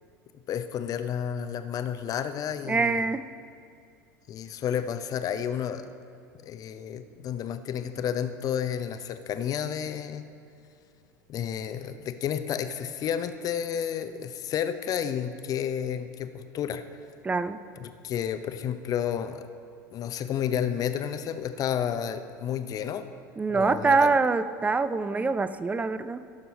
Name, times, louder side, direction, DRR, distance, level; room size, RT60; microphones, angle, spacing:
voice 1, 0.5-3.2 4.3-5.9 6.4-10.3 11.3-16.8 17.8-19.5 19.9-23.1 23.5-24.1, left 9 dB, 35° left, 10 dB, 0.6 m, -31 dB
voice 2, 2.7-3.3 17.2-17.6 23.4-26.2, right 4 dB, 15° right, 13 dB, 0.5 m, -24 dB
16.5 x 6.9 x 4.2 m, 2.4 s
figure-of-eight pair, 75°, 10 cm